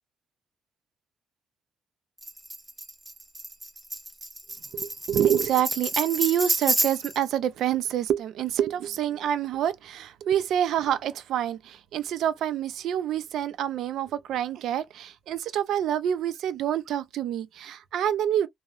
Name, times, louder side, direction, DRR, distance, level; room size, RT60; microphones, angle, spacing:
Tambourine, 2.2-7.2, right 1 dB, 10° right, 0.5 m, -30 dB
voice 1, 4.7-18.5, right 10 dB, 80° right, 0.4 m, -27 dB
2.7 x 2.0 x 2.3 m
cardioid pair, 90°, 0 cm